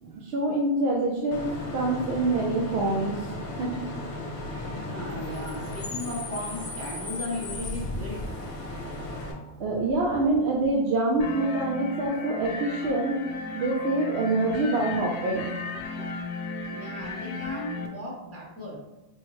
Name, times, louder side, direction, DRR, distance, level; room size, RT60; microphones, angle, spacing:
voice 1, 0.0-3.1 3.6-3.8 9.1-9.2 9.6-13.2 13.5-15.5 15.9-16.1, right 2 dB, 80° right, -2 dB, 0.8 m, -26 dB
Bus / Idling / Screech, 1.3-9.3, left 1 dB, 55° left, 0.8 m, -35 dB
voice 2, 4.7-8.3 16.6-18.8, left 1 dB, 15° right, -4 dB, 0.8 m, -36 dB
sound 1, 11.2-17.9, left 3 dB, 85° left, 0.8 m, -35 dB
4.5 x 2.1 x 3.0 m, 1.0 s
omnidirectional pair, 1.1 m